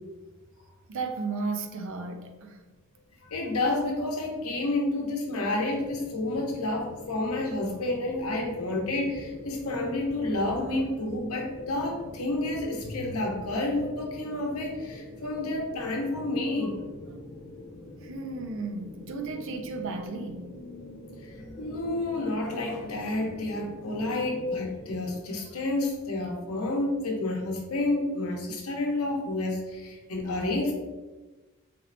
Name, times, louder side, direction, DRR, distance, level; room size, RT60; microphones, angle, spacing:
voice 1, 0.9-2.6 17.1-17.2 18.0-20.5, right 3 dB, 60° right, 0.5 m, -34 dB
voice 2, 3.3-16.7 21.2-30.7, left 2 dB, 80° left, 0.8 m, -30 dB
sound 1, 5.7-25.2, left 2 dB, 35° left, 0.5 m, -45 dB
4.3 x 3.2 x 2.5 m
head